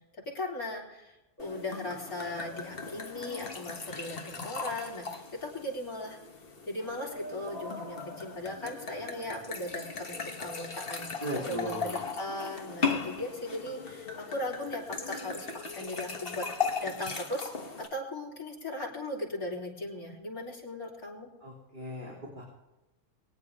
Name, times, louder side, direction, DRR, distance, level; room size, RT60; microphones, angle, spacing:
voice 1, 0.3-6.2 6.7-11.1 11.4-16.5 16.8-17.5 17.8-21.3, left 1 dB, 85° left, -3 dB, 4.1 m, -38 dB
sound 1, 1.4-17.9, left 5 dB, 40° left, 1.5 m, -38 dB
voice 2, 11.2-12.0 21.4-22.4, equal, 35° right, -5 dB, 3.7 m, -37 dB
23.0 x 9.6 x 3.6 m, 0.98 s
omnidirectional pair, 1.5 m